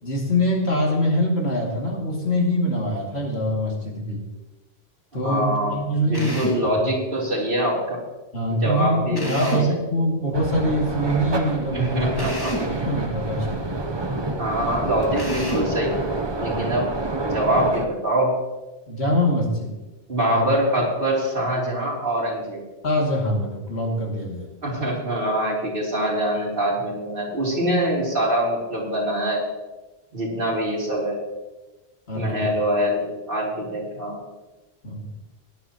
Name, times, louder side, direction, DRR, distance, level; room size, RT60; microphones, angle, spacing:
voice 1, 0.0-4.2 5.1-6.4 8.3-12.1 12.7-13.7 16.5-16.7 18.9-19.7 20.3-20.4 22.8-24.5 32.1-32.5 34.8-35.1, equal, 80° left, -1 dB, 2.7 m, -24 dB
voice 2, 5.2-8.0 8.5-9.8 11.7-12.5 14.4-16.1 16.4-16.9 17.3-18.4 20.1-22.6 24.6-29.4 30.1-31.2 32.1-34.2, right 1 dB, 60° right, -4 dB, 3.4 m, -24 dB
Drill, 6.1-6.7 9.1-9.8 12.2-12.8 15.2-15.8, equal, 20° left, 2.1 m, -30 dB
sound 1, 10.3-17.9, right 2 dB, 25° right, 0.8 m, -28 dB
18.0 x 10.5 x 3.0 m, 1.1 s
omnidirectional pair, 1.1 m